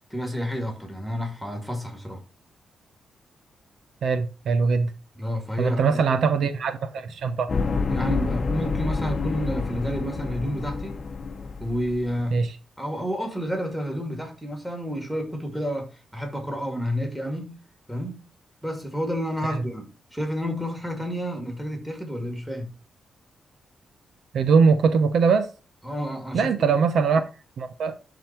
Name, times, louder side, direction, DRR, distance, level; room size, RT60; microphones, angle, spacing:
voice 1, 0.1-2.2 5.2-6.2 7.9-11.0 11.6-12.4 12.8-17.6 17.9-18.2 18.6-22.7 25.8-26.7, equal, ahead, 2.4 m, -30 dB
voice 2, 4.0-4.9 5.6-7.5 12.3-12.5 19.5-19.6 24.3-25.5 26.3-27.3 27.6-28.0, right 5 dB, 70° right, 0.8 m, -21 dB
sound 1, 7.5-12.3, left 4 dB, 35° left, 0.9 m, -28 dB
11.5 x 3.9 x 4.5 m
wide cardioid pair, 145°, 0 cm